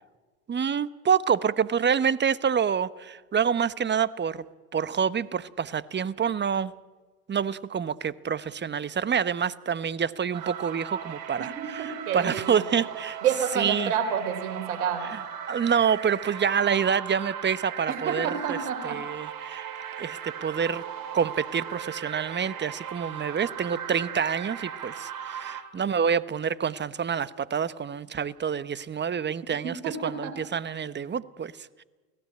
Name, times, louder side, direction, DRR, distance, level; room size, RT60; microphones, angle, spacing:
voice 1, 0.5-4.4 4.7-6.7 7.3-13.2 13.6-13.9 15.5-18.6 18.8-19.7 20.0-20.8 21.1-31.8, right 7 dB, 25° right, 17 dB, 1.1 m, -27 dB
sound 1, 10.3-25.6, right 9 dB, 50° right, 4.1 m, -38 dB
voice 2, 11.4-12.6 13.2-15.2 17.9-19.0 29.6-30.4, right 7 dB, 75° right, 8 dB, 3.8 m, -29 dB
29.5 x 18.0 x 8.8 m, 1.3 s
hypercardioid pair, 75°, 43 cm